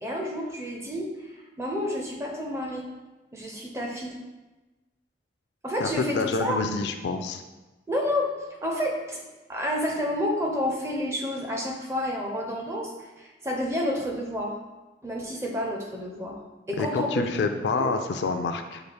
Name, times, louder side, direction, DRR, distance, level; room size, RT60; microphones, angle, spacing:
voice 1, 0.0-2.9 3.3-4.2 5.6-6.6 7.9-8.3 8.6-9.2 9.5-14.5 15.0-16.4 16.7-17.1 17.4-17.5 17.8-17.9, left 1 dB, 15° right, 0 dB, 0.5 m, -30 dB
voice 2, 5.8-7.4 16.8-18.8, left 4 dB, 70° left, 7 dB, 0.3 m, -27 dB
5.7 x 2.3 x 3.3 m, 1.1 s
head